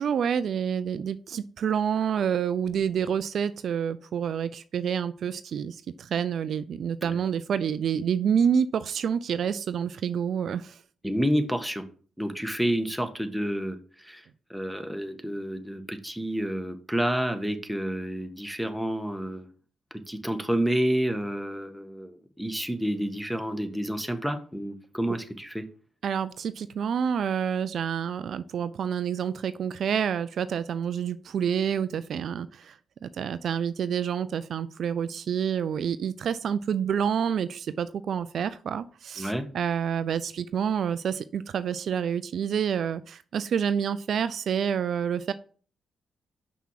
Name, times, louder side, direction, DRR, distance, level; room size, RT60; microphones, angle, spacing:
voice 1, 0.0-10.8 26.0-45.3, right 8 dB, 65° right, 14 dB, 0.4 m, -28 dB
voice 2, 11.0-11.8 12.2-19.5 20.1-25.6 39.2-39.5, equal, ahead, 6 dB, 1.5 m, -29 dB
6.1 x 5.7 x 5.8 m, 0.42 s
hypercardioid pair, 45°, 0 cm